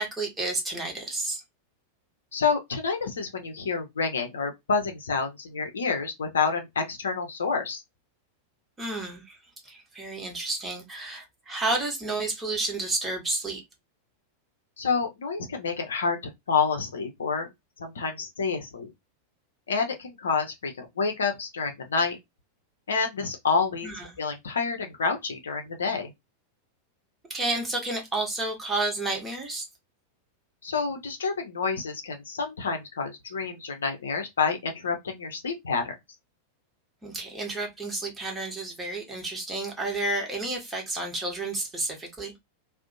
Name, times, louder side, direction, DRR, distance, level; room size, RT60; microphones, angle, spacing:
voice 1, 0.0-1.4 8.8-9.4 9.6-13.6 23.8-24.0 27.3-29.7 37.0-42.3, right 2 dB, 15° right, 0.9 m, -31 dB
voice 2, 2.3-7.8 14.8-16.2 16.5-17.5 17.8-18.9 19.7-22.2 22.9-23.9 24.2-26.1 30.6-36.0, left 5 dB, 70° left, 0.5 m, -28 dB
2.5 x 2.0 x 2.5 m
figure-of-eight pair, 90°, 0 cm